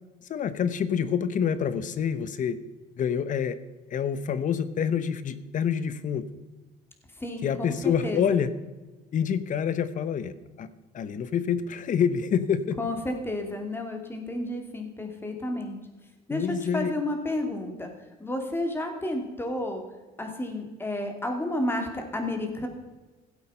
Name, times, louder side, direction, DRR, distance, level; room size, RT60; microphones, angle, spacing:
voice 1, 0.2-2.6 3.0-3.6 3.9-6.2 7.4-8.5 9.1-10.3 10.6-10.7 10.9-12.8 16.3-16.9, left 7 dB, 50° left, 14 dB, 0.9 m, -27 dB
voice 2, 7.8-8.4 12.8-15.8 16.3-17.9 18.2-19.8 20.2-22.7, left 1 dB, 15° left, 4 dB, 2.5 m, -31 dB
16.0 x 8.2 x 5.6 m, 1.2 s
cardioid pair, 110°, 17 cm